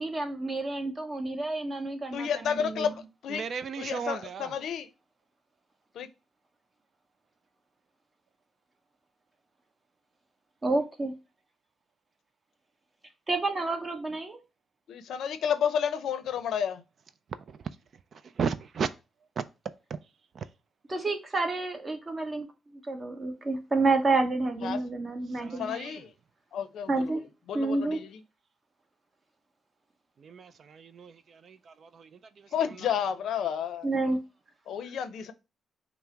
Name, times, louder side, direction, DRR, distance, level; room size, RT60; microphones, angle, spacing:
voice 1, 0.0-2.9 10.6-11.1 13.3-14.4 20.9-22.5 22.9-25.9 26.9-27.2 27.5-28.0 33.8-34.2, right 3 dB, 25° right, 1.1 m, -29 dB
voice 2, 2.1-2.9 3.2-3.4 3.8-4.9 6.0-6.1 14.9-16.8 24.6-24.8 25.6-26.1 26.5-27.1 27.5-28.1 32.5-33.9 34.7-35.3, left 8 dB, 80° left, 0.5 m, -31 dB
voice 3, 3.3-4.5 18.4-18.9 19.4-19.5 25.4-26.0 30.2-32.1, right 6 dB, 55° right, 0.4 m, -34 dB
5.6 x 2.0 x 4.5 m
cardioid pair, 110°, 0 cm